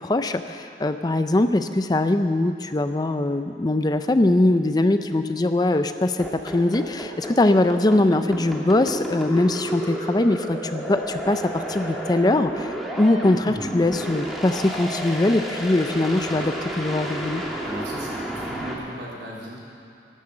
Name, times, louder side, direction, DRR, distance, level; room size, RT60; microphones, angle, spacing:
voice 1, 0.0-17.4, left 2 dB, 20° left, 9 dB, 0.4 m, -22 dB
sound 1, 6.2-18.7, right 1 dB, ahead, 1.9 m, -31 dB
voice 2, 17.6-19.7, equal, 75° right, -4 dB, 3.7 m, -37 dB
14.0 x 12.0 x 7.6 m, 2.7 s
head